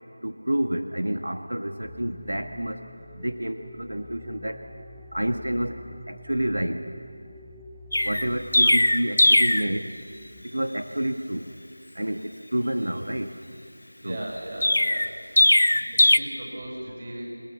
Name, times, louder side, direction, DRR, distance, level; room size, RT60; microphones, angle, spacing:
voice 1, 0.2-2.8 3.2-4.6 5.1-5.8 6.1-6.8 8.0-9.9 10.5-11.4 11.9-13.3 14.0-14.3, right 1 dB, 85° right, 6 dB, 1.5 m, -29 dB
sound 1, 1.8-10.4, left 2 dB, 5° right, 0.7 m, -47 dB
Chirp tweet, 7.9-9.7 14.6-16.2, left 1 dB, 70° left, 1.0 m, -19 dB
voice 2, 14.0-17.3, right 1 dB, 30° right, -2 dB, 6.5 m, -38 dB
27.5 x 20.0 x 7.0 m, 2.3 s
figure-of-eight pair, 175°, 0 cm